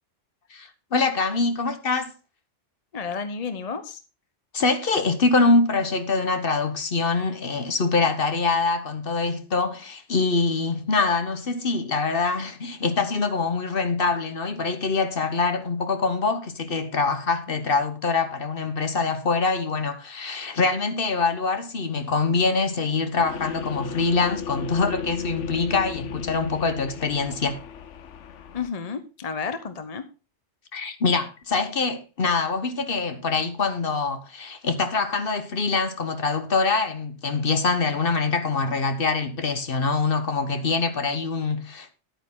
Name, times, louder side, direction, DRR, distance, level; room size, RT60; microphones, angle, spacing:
voice 1, 0.5-2.1 4.5-27.6 30.7-41.9, left 4 dB, 50° left, 1.3 m, -24 dB
voice 2, 2.9-4.0 28.5-30.0, left 5 dB, 35° left, 0.8 m, -31 dB
sound 1, 23.2-28.7, left 7 dB, 80° left, 1.1 m, -35 dB
11.0 x 8.9 x 3.7 m
omnidirectional pair, 1.2 m